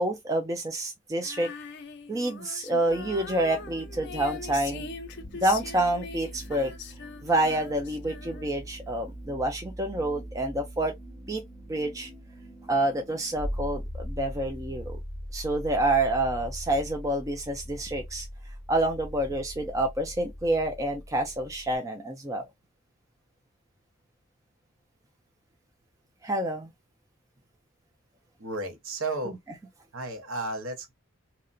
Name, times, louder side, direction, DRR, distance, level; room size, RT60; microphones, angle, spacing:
voice 1, 0.0-1.5 2.1-4.9 5.4-6.7 7.2-10.9 11.3-11.4 11.7-12.1 12.7-15.0 15.3-18.3 18.7-22.4 26.2-26.7, right 1 dB, 15° right, 0.3 m, -28 dB
Female singing, 1.2-8.7, left 5 dB, 50° left, 0.4 m, -41 dB
sound 1, 2.9-21.8, equal, 5° left, 0.7 m, -41 dB
voice 2, 28.4-29.4 29.9-30.9, right 2 dB, 65° right, 0.8 m, -33 dB
2.8 x 2.1 x 2.5 m
head